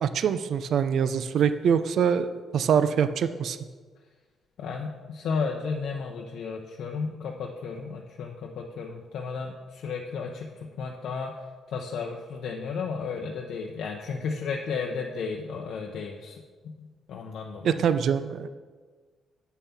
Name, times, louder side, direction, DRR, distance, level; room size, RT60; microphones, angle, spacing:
voice 1, 0.0-2.3 2.5-3.6 17.6-18.5, right 7 dB, 65° right, 12 dB, 0.4 m, -24 dB
voice 2, 4.6-11.3 11.7-17.8, left 5 dB, 75° left, 0 dB, 0.7 m, -33 dB
8.2 x 5.6 x 5.8 m, 1.5 s
cardioid pair, 90°, 0 cm